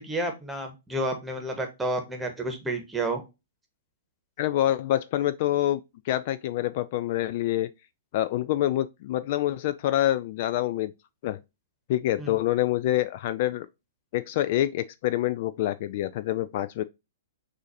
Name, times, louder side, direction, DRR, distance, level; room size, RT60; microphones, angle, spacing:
voice 1, 0.0-3.2 12.2-12.3, right 1 dB, 10° right, 1.2 m, -30 dB
voice 2, 4.4-7.7 8.1-10.9 11.2-11.4 11.9-13.7 14.1-16.8, left 13 dB, 50° left, 0.3 m, -26 dB
6.2 x 2.6 x 2.6 m
figure-of-eight pair, 115°, 0 cm